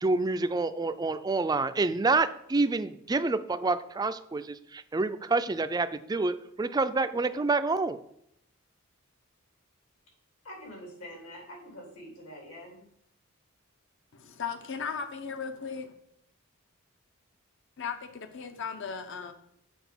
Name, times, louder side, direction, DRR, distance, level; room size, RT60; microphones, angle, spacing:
voice 1, 0.0-8.0, right 3 dB, 20° right, 11 dB, 0.3 m, -28 dB
voice 2, 10.4-12.8, equal, 80° left, 0 dB, 3.0 m, -45 dB
voice 3, 14.1-15.9 17.8-19.3, left 6 dB, 60° left, 8 dB, 0.7 m, -36 dB
7.1 x 4.7 x 6.0 m, 0.75 s
head